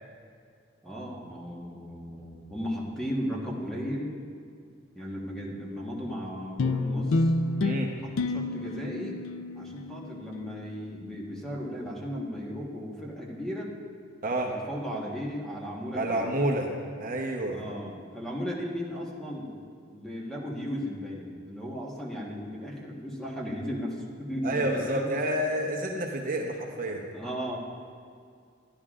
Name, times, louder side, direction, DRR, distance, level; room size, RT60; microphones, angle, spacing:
voice 1, 0.8-4.2 4.9-7.3 8.0-9.2 9.5-13.7 14.4-16.3 17.5-19.5 19.9-25.1 27.1-27.6, equal, 5° left, -4 dB, 1.3 m, -36 dB
sound 1, 6.6-11.2, left 2 dB, 70° left, 0.4 m, -30 dB
voice 2, 16.0-16.7 17.0-17.6 24.4-27.0, right 1 dB, 45° right, 0 dB, 0.9 m, -29 dB
13.0 x 10.5 x 2.5 m, 2.2 s
head